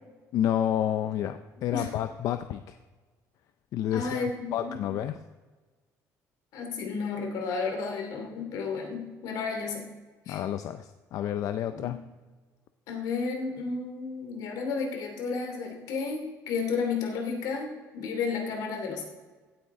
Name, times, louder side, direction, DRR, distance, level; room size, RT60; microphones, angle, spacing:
voice 1, 0.3-2.8 3.7-4.3 4.5-5.1 10.3-12.0, left 10 dB, 60° left, 9 dB, 0.5 m, -29 dB
voice 2, 3.9-5.0 6.5-9.9 10.3-10.4 11.7-11.9 12.9-19.0, left 5 dB, 80° left, 3 dB, 2.7 m, -32 dB
16.5 x 8.8 x 3.7 m, 1.3 s
cardioid pair, 150°, 6 cm